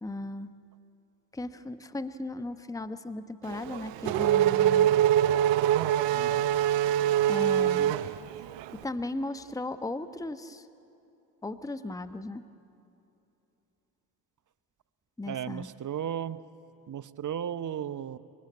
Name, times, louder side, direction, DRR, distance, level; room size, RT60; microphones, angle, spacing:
voice 1, 0.0-0.5 1.3-4.9 7.3-7.9 8.7-10.7 11.4-12.4 15.2-15.7, left 2 dB, 5° left, 11 dB, 1.0 m, -36 dB
Race car auto racing / Accelerating revving vroom, 3.5-8.7, right 11 dB, 65° right, 0.9 m, -24 dB
voice 2, 6.1-6.5 15.3-16.4 16.9-18.2, right 9 dB, 40° right, 15 dB, 1.0 m, -35 dB
24.5 x 21.5 x 8.5 m, 2.8 s
hypercardioid pair, 50°, 47 cm